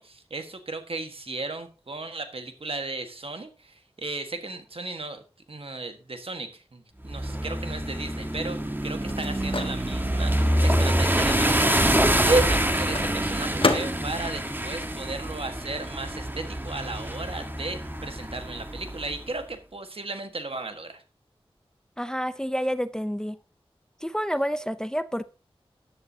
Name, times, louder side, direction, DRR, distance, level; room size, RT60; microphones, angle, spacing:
voice 1, 0.0-5.2 5.5-21.0, right 2 dB, 65° right, 7 dB, 1.6 m, -34 dB
sound 1, 7.1-19.2, right 1 dB, 20° right, 1.4 m, -26 dB
Microwave oven, 8.4-15.8 16.1-18.0, left 3 dB, 60° left, 1.4 m, -34 dB
voice 2, 22.0-23.4 24.0-25.2, equal, 5° left, 13 dB, 0.7 m, -28 dB
13.5 x 10.5 x 2.9 m, 0.33 s
wide cardioid pair, 45°, 10 cm